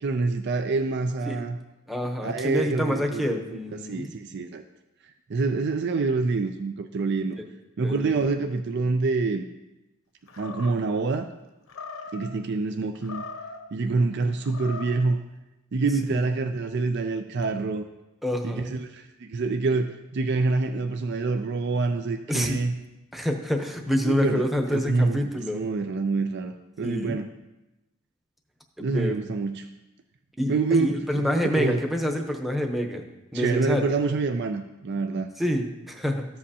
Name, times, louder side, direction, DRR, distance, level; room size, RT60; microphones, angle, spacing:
voice 1, 0.0-1.6 2.2-4.6 5.3-7.4 7.8-9.4 10.4-11.3 12.1-13.2 13.7-15.2 15.7-17.9 18.4-22.7 24.0-24.4 24.7-25.3 25.5-27.3 28.8-29.7 30.5-31.8 33.3-35.3, right 3 dB, 55° right, 7 dB, 0.4 m, -26 dB
voice 2, 1.9-4.1 7.8-8.2 16.1-16.2 18.2-18.8 22.3-22.6 23.1-25.6 26.8-27.2 28.8-29.2 30.4-33.9 35.4-36.3, equal, ahead, 3 dB, 0.8 m, -27 dB
Animal, 10.3-11.0 11.7-12.3 12.9-13.7 14.4-15.1, left 3 dB, 80° left, 0.9 m, -40 dB
14.0 x 7.6 x 2.8 m, 1.0 s
head